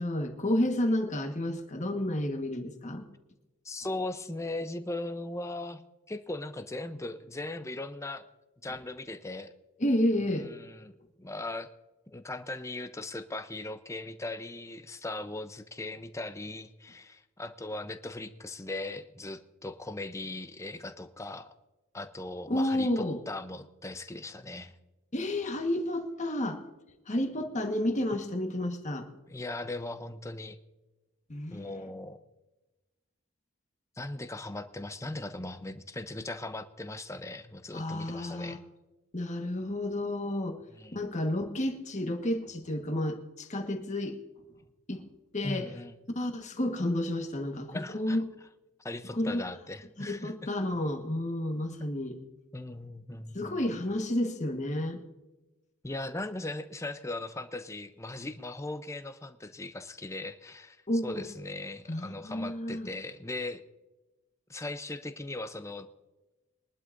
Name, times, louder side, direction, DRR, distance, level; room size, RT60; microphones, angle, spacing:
voice 1, 0.0-3.0 9.8-10.5 22.5-23.2 25.1-26.6 27.1-29.1 31.3-31.9 37.7-38.6 39.1-40.6 40.9-44.2 44.9-45.0 45.3-45.7 46.1-48.3 49.1-49.4 50.0-52.2 53.3-55.0 60.9-61.2 61.9-62.9, left 1 dB, 35° left, 4 dB, 1.4 m, -31 dB
voice 2, 3.6-5.8 6.1-8.2 8.6-9.5 10.2-10.9 11.2-11.7 12.1-21.5 21.9-24.7 29.3-30.6 31.5-32.2 34.0-38.6 40.7-41.0 45.4-46.0 47.7-48.2 48.8-50.5 52.5-53.8 55.8-60.8 61.0-63.6 64.5-65.9, left 2 dB, 15° left, 9 dB, 0.6 m, -39 dB
22.5 x 11.5 x 2.6 m, 1.1 s
head